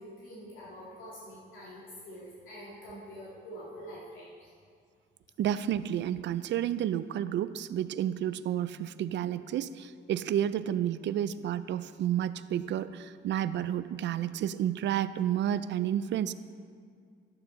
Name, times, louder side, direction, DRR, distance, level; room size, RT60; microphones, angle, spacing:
voice 1, 0.0-4.5, equal, 85° left, -7 dB, 2.4 m, -46 dB
voice 2, 5.4-16.3, right 10 dB, 65° right, 14 dB, 0.4 m, -31 dB
11.5 x 9.0 x 4.0 m, 2.2 s
cardioid pair, 90°, 20 cm